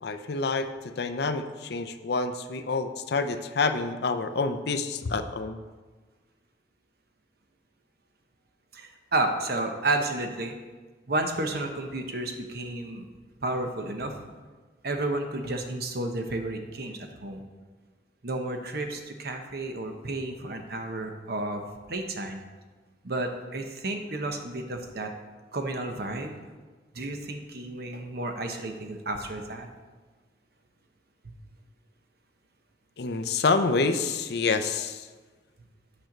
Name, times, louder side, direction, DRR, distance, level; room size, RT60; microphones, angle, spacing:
voice 1, 0.0-5.6 33.0-35.1, left 4 dB, 60° left, 9 dB, 0.5 m, -28 dB
voice 2, 8.7-10.6 11.1-13.1 13.4-14.2 14.8-17.4 18.2-21.6 21.9-22.4 23.0-25.1 25.5-26.3 26.9-29.7, right 2 dB, 60° right, 4 dB, 0.9 m, -31 dB
8.6 x 4.5 x 6.5 m, 1.3 s
head